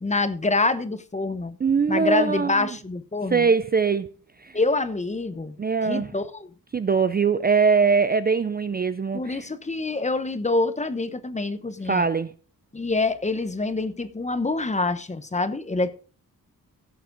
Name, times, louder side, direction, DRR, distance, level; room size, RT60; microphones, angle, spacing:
voice 1, 0.0-1.6 1.9-3.5 4.5-5.6 5.8-6.5 9.1-12.1 12.7-15.9, left 3 dB, 20° left, 0.9 m, -26 dB
voice 2, 1.6-2.7 3.3-4.1 4.4-4.6 5.6-6.1 6.7-9.5 11.9-12.3, right 5 dB, 25° right, 0.4 m, -22 dB
16.0 x 7.7 x 3.9 m
wide cardioid pair, 140°, 36 cm